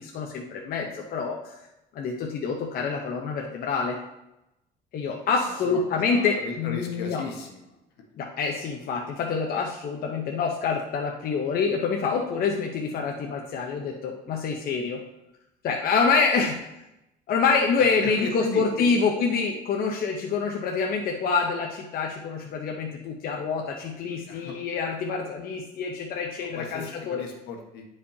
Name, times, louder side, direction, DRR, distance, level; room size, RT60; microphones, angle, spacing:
voice 1, 0.0-1.6 1.9-4.0 4.9-7.2 8.2-15.0 15.6-16.6 17.3-27.2, left 5 dB, 60° left, 1 dB, 0.9 m, -26 dB
voice 2, 5.4-7.6 17.8-18.9 24.1-24.6 26.5-27.8, left 4 dB, 85° left, 2 dB, 1.4 m, -36 dB
10.0 x 5.0 x 2.8 m, 0.89 s
cardioid pair, 110°, 17 cm